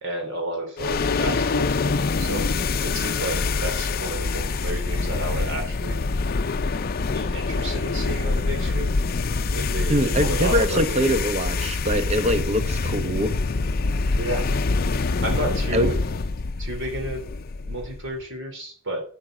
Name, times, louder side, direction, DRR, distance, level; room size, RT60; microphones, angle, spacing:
voice 1, 0.0-2.5 2.8-6.0 7.1-8.9 9.5-11.0 14.1-14.4 15.2-15.9 16.6-17.2 17.6-19.0, right 1 dB, 60° right, 3.1 m, -31 dB
sound 1, 0.8-18.1, left 3 dB, 45° left, 0.6 m, -25 dB
voice 2, 9.9-13.3 15.7-15.9, equal, 30° right, 1.0 m, -23 dB
10.5 x 8.9 x 6.2 m
head